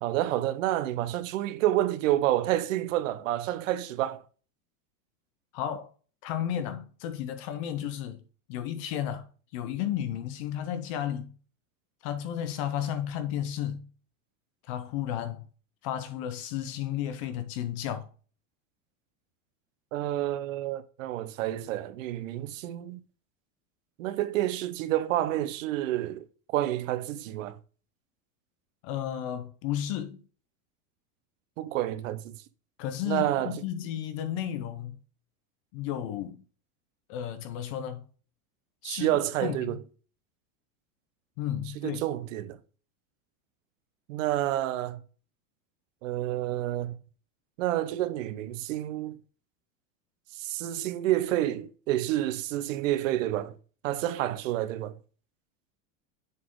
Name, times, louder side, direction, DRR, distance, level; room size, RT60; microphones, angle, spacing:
voice 1, 0.0-4.2 19.9-23.0 24.0-27.6 31.6-32.4 33.1-33.5 38.8-39.8 41.7-42.6 44.1-45.0 46.0-47.0 47.6-49.2 50.3-53.6 53.8-55.0, right 14 dB, 80° right, 0.9 m, -29 dB
voice 2, 5.5-5.9 6.2-8.2 8.5-9.3 9.5-11.3 12.0-13.9 14.7-15.4 15.8-18.1 28.8-30.2 32.8-35.0 35.7-36.4 37.1-38.1 38.8-39.1 39.4-39.8 41.4-42.0, left 10 dB, 30° left, 0.4 m, -33 dB
7.3 x 4.2 x 3.7 m
supercardioid pair, 180°, 38 cm